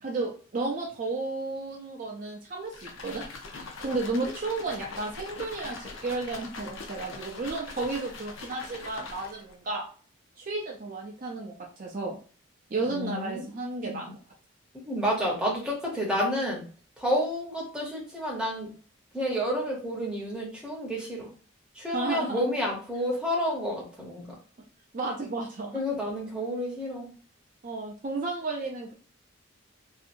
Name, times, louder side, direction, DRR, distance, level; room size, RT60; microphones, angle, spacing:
voice 1, 0.0-3.2 3.8-9.8 10.4-12.2 12.7-14.2 21.9-22.4 24.9-25.8 27.6-28.9, right 3 dB, 40° right, 0 dB, 0.4 m, -33 dB
sound 1, 2.7-9.5, left 3 dB, 75° left, 0.6 m, -42 dB
voice 2, 12.9-13.5 13.8-14.1 14.8-16.6 17.0-18.7 19.1-21.3 21.8-24.4 25.7-27.1, equal, 5° right, -3 dB, 0.8 m, -30 dB
2.7 x 2.4 x 2.5 m, 0.39 s
head